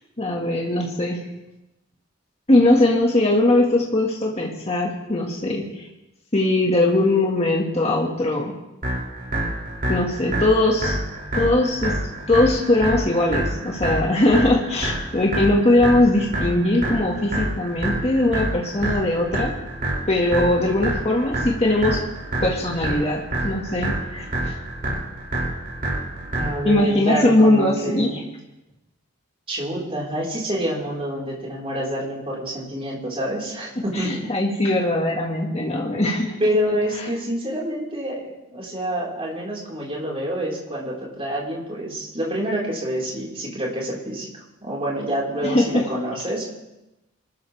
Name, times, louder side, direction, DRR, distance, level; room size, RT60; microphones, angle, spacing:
voice 1, 0.2-1.3 2.5-5.9 6.3-8.6 9.9-11.0 11.3-12.0 12.3-19.5 20.1-22.0 22.4-24.6 26.6-28.2 33.9-36.3 37.0-37.1 45.4-45.9, left 1 dB, 35° left, -1 dB, 1.9 m, -20 dB
sound 1, 8.8-26.8, right 1 dB, 50° right, 6.2 m, -27 dB
voice 2, 26.3-28.2 29.5-34.3 36.4-46.5, equal, 30° right, -4 dB, 4.6 m, -27 dB
26.0 x 13.5 x 3.5 m, 0.96 s
head